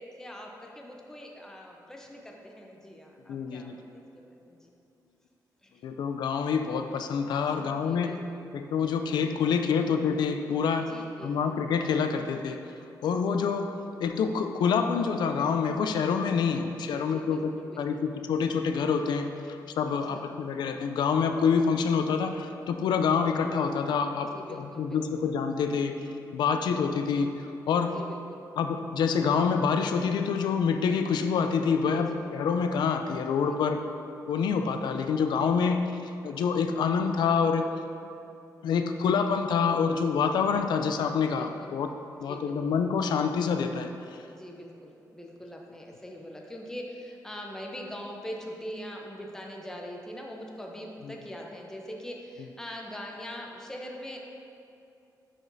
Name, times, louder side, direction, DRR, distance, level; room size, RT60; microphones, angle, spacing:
voice 1, 0.0-4.7 5.6-5.7 7.4-8.4 10.9-11.3 16.9-17.8 19.9-20.2 24.3-25.0 27.8-28.4 31.9-32.1 33.5-33.8 41.3-41.7 42.3-42.6 44.3-54.2, equal, 5° left, 0 dB, 0.7 m, -42 dB
voice 2, 3.3-3.8 5.8-8.1 8.5-11.0 11.2-12.7 13.0-17.5 17.8-26.0 26.3-28.0 28.6-33.8 34.3-36.0 36.2-37.7 38.6-41.9 42.2-44.2, left 6 dB, 90° left, 6 dB, 0.4 m, -27 dB
9.6 x 4.9 x 2.7 m, 2.7 s
wide cardioid pair, 140°, 7 cm